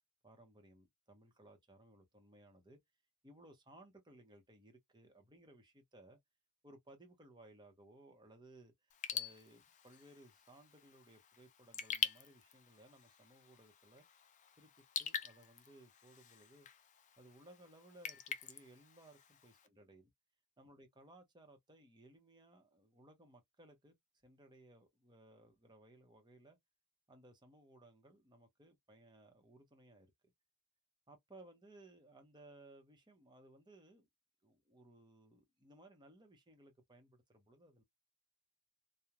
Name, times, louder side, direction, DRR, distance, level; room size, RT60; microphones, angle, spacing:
voice 1, 0.2-2.8 3.2-6.2 6.6-14.0 14.6-14.7 15.0-16.7 17.2-20.1 20.6-24.0 24.2-26.6 27.1-30.3 31.1-34.1 34.4-37.8, right 1 dB, 20° right, 0.7 m, -61 dB
Raindrop / Drip, 8.9-19.7, left 8 dB, 35° left, 0.3 m, -46 dB
3.0 x 2.0 x 2.3 m
head